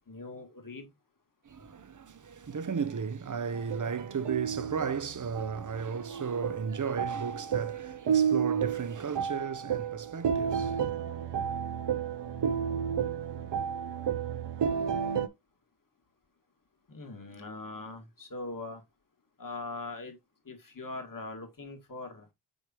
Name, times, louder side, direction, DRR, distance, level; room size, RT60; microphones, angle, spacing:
voice 1, 0.1-0.9 16.9-18.8 19.4-20.2 20.5-22.3, left 2 dB, 50° left, 2.0 m, -41 dB
voice 2, 1.4-10.9, right 6 dB, 45° right, 0.7 m, -35 dB
sound 1, 3.5-15.3, right 7 dB, 80° right, 0.8 m, -32 dB
6.5 x 5.0 x 2.9 m
wide cardioid pair, 55°, 41 cm